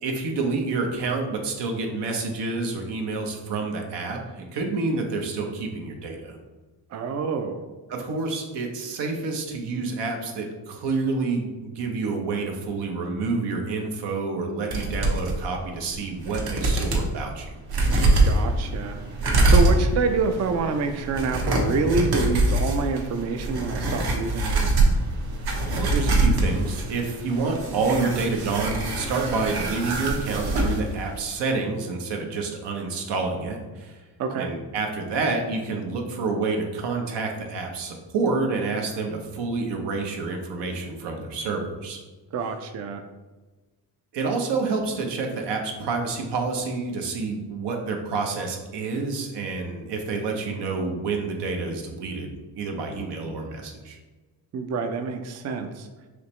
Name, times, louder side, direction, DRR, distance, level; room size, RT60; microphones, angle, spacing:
voice 1, 0.0-6.4 7.9-17.5 25.8-34.0 34.4-42.0 44.1-54.0, right 3 dB, 80° right, 2 dB, 0.9 m, -28 dB
voice 2, 6.9-7.6 18.2-19.0 19.4-24.7 34.2-34.5 42.3-43.0 54.5-55.9, right 4 dB, 40° right, 6 dB, 0.4 m, -27 dB
sound 1, 14.7-15.3 15.9-16.0 16.2-17.1 17.7-30.8 31.1-31.2, right 2 dB, 65° right, 1.0 m, -24 dB
5.0 x 3.0 x 3.1 m, 1.2 s
cardioid pair, 95°, 41 cm